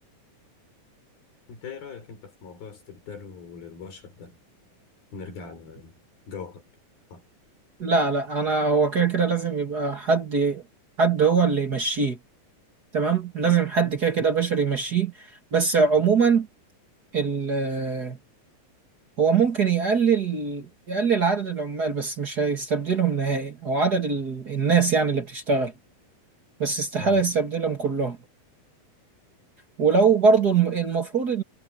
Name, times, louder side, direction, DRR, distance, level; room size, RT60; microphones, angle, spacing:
voice 1, 1.5-4.4 5.1-6.0 6.3-6.6 7.1-7.2 27.0-27.2, left 5 dB, 80° left, 7.7 m, -41 dB
voice 2, 7.8-10.6 11.0-12.2 12.9-16.5 17.1-18.2 19.2-25.7 26.6-28.2 29.8-31.4, right 5 dB, 35° right, 1.9 m, -23 dB
omnidirectional pair, 4.2 m